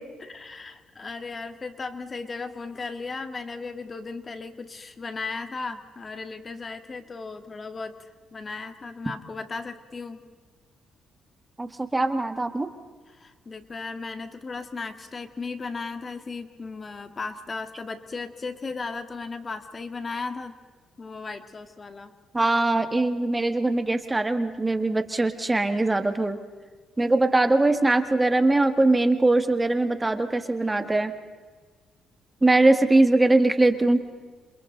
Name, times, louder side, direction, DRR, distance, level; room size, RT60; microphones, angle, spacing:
voice 1, 0.2-8.0 8.3-10.2 13.1-20.6 21.0-22.1, left 4 dB, 35° left, 9 dB, 1.9 m, -36 dB
voice 2, 11.6-12.7 22.3-26.4 27.0-31.1 32.4-34.0, right 2 dB, 15° right, 8 dB, 1.9 m, -21 dB
28.5 x 27.5 x 4.0 m, 1.4 s
cardioid pair, 90°, 0 cm